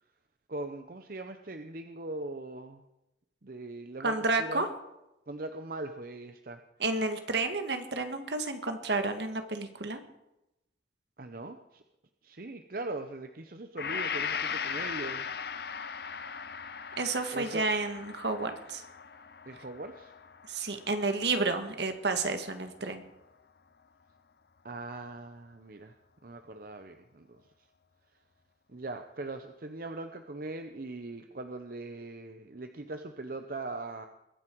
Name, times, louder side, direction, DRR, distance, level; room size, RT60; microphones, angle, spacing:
voice 1, 0.5-2.8 3.4-4.6 5.3-6.6 11.2-11.8 12.2-15.4 17.3-17.7 19.5-20.1 24.6-25.9 26.2-27.4 28.7-34.1, right 2 dB, 50° right, 7 dB, 0.7 m, -40 dB
voice 2, 4.0-4.7 6.8-10.0 17.0-18.8 20.5-23.0, right 3 dB, 70° right, 7 dB, 1.7 m, -31 dB
Gong, 13.8-21.8, left 6 dB, 60° left, 0.7 m, -38 dB
22.0 x 9.6 x 4.6 m, 0.89 s
head